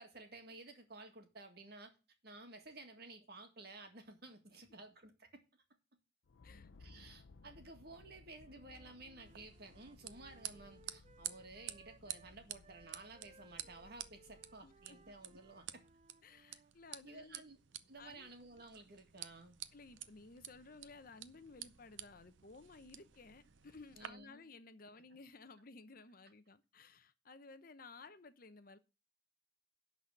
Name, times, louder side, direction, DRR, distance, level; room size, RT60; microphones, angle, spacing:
voice 1, 0.0-1.9 2.2-5.3 6.8-15.8 17.0-17.6 17.9-19.6 24.0-24.4, right 2 dB, 55° right, 1.9 m, -54 dB
sound 1, 6.2-15.9, left 3 dB, 90° left, 0.6 m, -62 dB
Wind instrument woodwind instrument, 8.4-16.7, right 4 dB, 35° right, 0.5 m, -65 dB
sound 2, 9.2-24.1, right 12 dB, 80° right, 0.6 m, -52 dB
voice 2, 14.6-15.0 16.2-17.4 18.0-18.3 19.7-28.8, left 3 dB, 50° left, 0.8 m, -56 dB
11.5 x 4.2 x 7.8 m
head